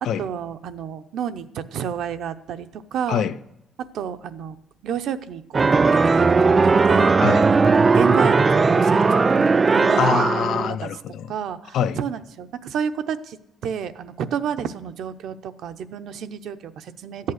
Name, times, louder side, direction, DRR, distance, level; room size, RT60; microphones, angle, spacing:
voice 1, 0.0-3.2 3.9-4.6 4.8-7.1 7.5-10.3 10.6-10.9 11.3-13.4 13.6-17.3, right 8 dB, 75° right, 0.7 m, -30 dB
sound 1, 5.5-10.7, right 4 dB, 25° right, 0.3 m, -17 dB
voice 2, 7.1-7.5 10.0-11.3 11.7-12.0, left 9 dB, 75° left, 0.5 m, -24 dB
14.0 x 8.5 x 6.4 m
cardioid pair, 130°, 0 cm